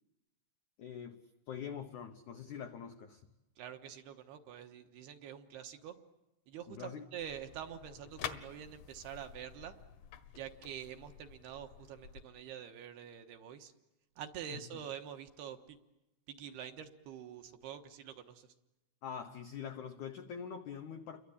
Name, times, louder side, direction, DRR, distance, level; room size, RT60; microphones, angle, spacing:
voice 1, 0.8-1.2 1.5-3.2 6.7-7.0 14.5-14.6 19.0-21.2, left 7 dB, 85° left, 7 dB, 1.7 m, -44 dB
voice 2, 3.6-6.0 6.5-9.7 10.3-13.7 14.2-15.8 16.3-18.5, right 9 dB, 70° right, 7 dB, 2.9 m, -46 dB
sound 1, 7.2-12.2, left 9 dB, 65° left, 2.4 m, -48 dB
30.0 x 23.5 x 8.6 m, 0.96 s
omnidirectional pair, 5.4 m